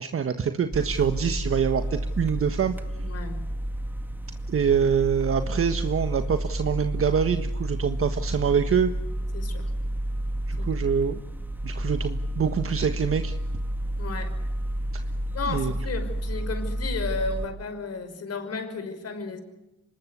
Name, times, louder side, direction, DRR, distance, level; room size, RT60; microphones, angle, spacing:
voice 1, 0.0-2.7 4.5-8.9 10.5-11.2 11.6-13.3 15.5-15.7, right 7 dB, 45° right, 8 dB, 1.5 m, -25 dB
sound 1, 0.7-17.5, right 1 dB, 5° right, 1.9 m, -30 dB
voice 2, 3.0-3.5 9.3-9.7 10.6-10.7 14.0-14.3 15.3-19.4, left 4 dB, 55° left, 9 dB, 5.6 m, -33 dB
25.0 x 20.5 x 8.2 m, 0.95 s
cardioid pair, 90°, 30 cm